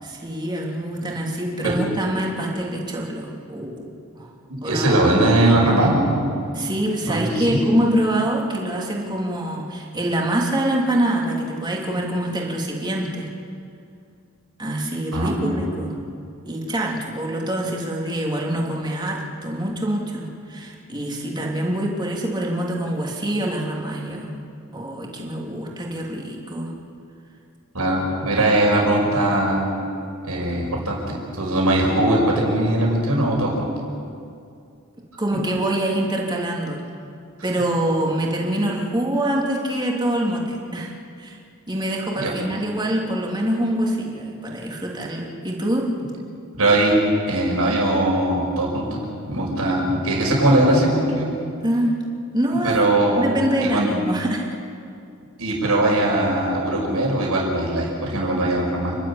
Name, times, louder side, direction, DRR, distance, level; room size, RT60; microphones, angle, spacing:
voice 1, 0.0-4.3 4.6-4.9 6.5-13.3 14.6-16.0 16.5-24.3 24.7-26.7 35.2-36.8 37.4-40.9 41.2-41.4 41.7-45.9 51.6-51.9 52.3-52.9 53.2-54.5, right 1 dB, 20° right, -2 dB, 3.2 m, -25 dB
voice 2, 4.5-6.2 7.1-7.6 15.1-15.6 27.7-29.7 30.2-33.7 42.1-42.3 46.5-47.0 47.3-51.3 52.6-53.3 53.6-53.9 55.4-59.0, right 1 dB, 85° right, -1 dB, 5.9 m, -20 dB
29.5 x 12.0 x 8.9 m, 2.4 s
head